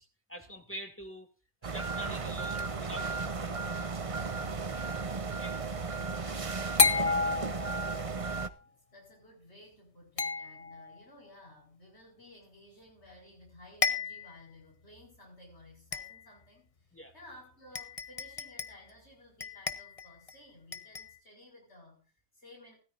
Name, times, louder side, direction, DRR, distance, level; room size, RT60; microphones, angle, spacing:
voice 1, 0.0-1.3 1.6-3.7 5.3-5.6 16.9-17.1, right 1 dB, 10° left, 4 dB, 2.4 m, -46 dB
sound 1, 1.6-8.5, right 4 dB, 35° right, 0.9 m, -35 dB
sound 2, 3.1-3.7 6.8-8.1 10.2-11.0 13.1-13.2 13.5-13.6 13.8-14.4 15.0-15.1 15.9-16.4 17.3-17.4 17.7-18.9 19.4-20.4 20.7-21.2, left 4 dB, 35° left, 1.0 m, -32 dB
voice 2, 5.6-6.0 6.2-7.7 8.6-22.8, left 1 dB, 80° left, 1 dB, 6.2 m, -56 dB
16.5 x 14.0 x 2.6 m, 0.33 s
omnidirectional pair, 1.1 m